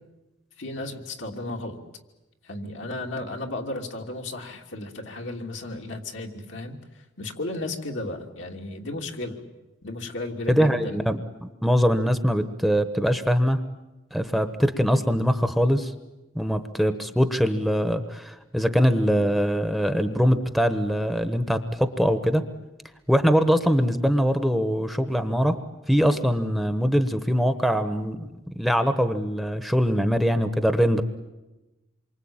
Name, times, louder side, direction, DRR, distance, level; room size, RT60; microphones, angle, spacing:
voice 1, 0.6-1.8 2.4-9.4 9.8-11.0, left 2 dB, 70° left, 2 dB, 3.1 m, -34 dB
voice 2, 10.5-13.6 14.1-15.9 16.3-22.4 23.1-25.6 25.9-28.3 28.6-31.0, equal, ahead, 9 dB, 1.1 m, -22 dB
27.5 x 24.5 x 8.9 m, 1.1 s
head